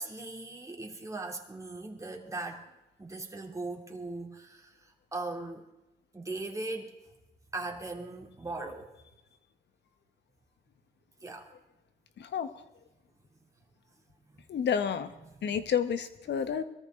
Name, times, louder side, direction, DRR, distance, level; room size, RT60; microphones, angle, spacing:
voice 1, 0.0-2.6 3.0-5.6 6.1-6.9 7.5-8.9 11.2-11.5 13.4-13.5 14.3-14.5 15.2-15.6, right 2 dB, 15° right, 3.0 m, -39 dB
voice 2, 12.2-12.5 14.5-15.1 15.4-16.6, left 7 dB, 60° left, 1.5 m, -30 dB
22.0 x 14.0 x 3.9 m
cardioid pair, 90°, 20 cm